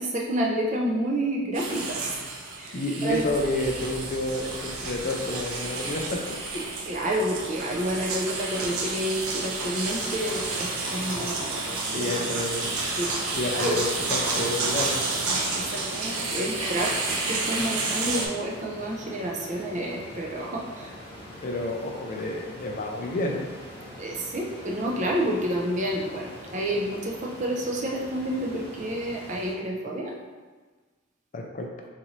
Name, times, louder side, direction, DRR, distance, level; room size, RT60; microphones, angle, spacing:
voice 1, 0.0-2.1 2.6-3.3 6.5-11.6 11.9-12.3 13.0-13.1 13.5-13.8 15.5-16.9 17.3-20.9 24.0-30.1, right 1 dB, 35° right, -1 dB, 0.4 m, -29 dB
sound 1, 1.5-18.3, right 3 dB, 90° right, 0.6 m, -30 dB
voice 2, 2.7-6.2 11.1-11.3 11.7-12.7 13.3-15.0 21.4-23.4 31.3-31.7, left 1 dB, 40° left, 1 dB, 0.3 m, -30 dB
B rain & thunder lightning close & cars sirens loop, 3.1-10.5, equal, 60° right, 0.9 m, -45 dB
sound 2, 9.9-29.5, equal, 20° left, 0.8 m, -43 dB
4.0 x 2.5 x 3.0 m, 1.4 s
head